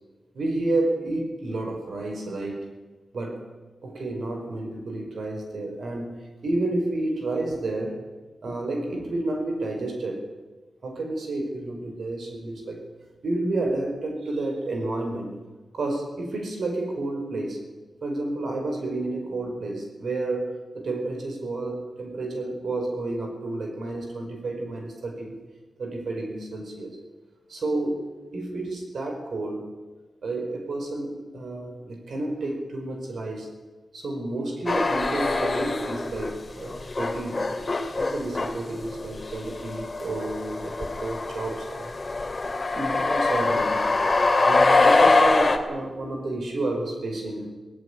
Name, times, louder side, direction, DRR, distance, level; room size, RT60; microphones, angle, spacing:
voice 1, 0.4-2.7 3.1-3.5 3.8-8.0 8.4-10.3 10.8-12.8 13.2-15.3 15.7-17.7 18.0-25.4 25.8-27.0 27.5-29.7 30.2-33.5 33.9-37.5 38.0-41.9 42.7-43.9 44.4-47.5, right 2 dB, 75° right, 3 dB, 5.2 m, -30 dB
sound 1, 34.7-36.3 36.6-45.6, left 3 dB, 30° left, 2.6 m, -23 dB
19.5 x 19.0 x 9.9 m, 1.3 s
wide cardioid pair, 150°, 0 cm